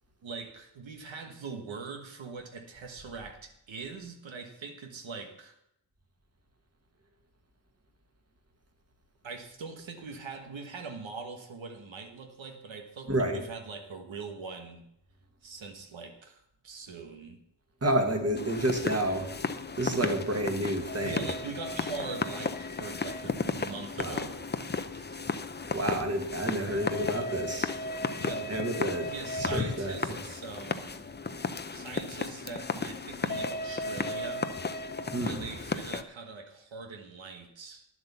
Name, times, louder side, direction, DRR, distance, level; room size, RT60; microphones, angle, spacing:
voice 1, 0.2-5.6 9.2-14.9 15.4-17.4 20.0-20.2 21.0-24.5 24.9-25.2 28.2-28.7 29.0-31.0 31.7-34.6 35.2-37.9, right 4 dB, 85° right, 4 dB, 1.4 m, -42 dB
voice 2, 13.1-13.4 17.8-19.3 19.8-21.3 24.0-24.3 25.7-27.7 28.5-29.1 29.4-30.2 35.1-35.5, right 1 dB, 35° right, 4 dB, 1.9 m, -30 dB
sound 1, 18.4-36.0, left 3 dB, 25° left, 0.6 m, -34 dB
10.5 x 7.8 x 6.9 m, 0.77 s
wide cardioid pair, 115°, 45 cm